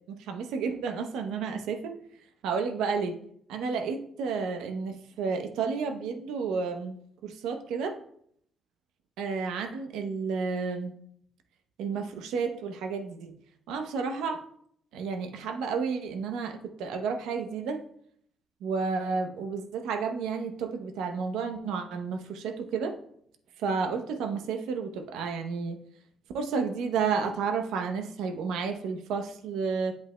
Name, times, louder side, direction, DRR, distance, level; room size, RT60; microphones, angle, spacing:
voice 1, 0.1-1.9 2.4-3.2 3.5-8.0 9.2-10.9 11.8-13.4 13.7-14.4 14.9-17.8 18.6-23.0 23.6-25.8 26.3-29.9, right 5 dB, 90° right, 6 dB, 0.7 m, -31 dB
8.1 x 7.8 x 2.2 m, 0.67 s
cardioid pair, 90°, 0 cm